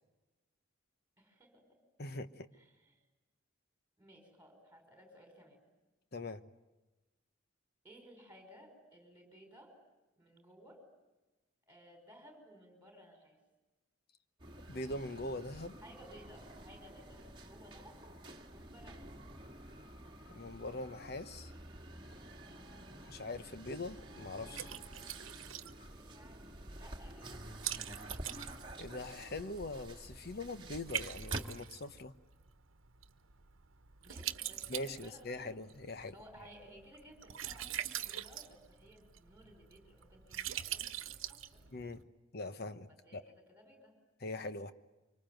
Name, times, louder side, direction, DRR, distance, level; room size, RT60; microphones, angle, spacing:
voice 1, 1.2-1.8 2.6-3.0 4.0-5.6 7.8-9.8 10.2-10.8 11.7-13.4 15.8-18.0 18.5-19.2 25.9-27.6 34.0-35.5 36.1-41.6 43.0-44.0, equal, 10° right, 3 dB, 5.6 m, -58 dB
voice 2, 2.0-2.5 6.1-6.4 14.7-15.8 20.3-21.5 23.1-24.7 28.8-32.1 34.7-36.1 41.7-42.1 42.3-43.2 44.2-44.7, left 2 dB, 50° left, 11 dB, 1.0 m, -42 dB
sound 1, 14.4-31.4, right 1 dB, 25° right, 1.8 m, -49 dB
Liquid, 22.6-42.0, right 11 dB, 80° right, 1.1 m, -45 dB
25.5 x 24.5 x 9.1 m, 1.1 s
head